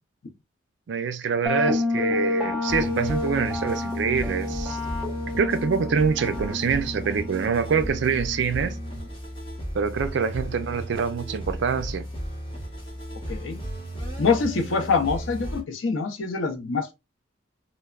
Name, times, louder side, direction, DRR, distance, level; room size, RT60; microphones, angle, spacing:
voice 1, 0.9-4.8 5.4-8.8 9.7-12.1, right 6 dB, 65° right, 0.4 m, -25 dB
sound 1, 1.5-9.1, left 2 dB, 5° right, 0.6 m, -29 dB
sound 2, 2.7-15.6, equal, 25° left, 0.9 m, -35 dB
voice 2, 13.3-13.6 14.2-16.9, left 4 dB, 85° left, 0.6 m, -25 dB
3.2 x 2.0 x 2.3 m
head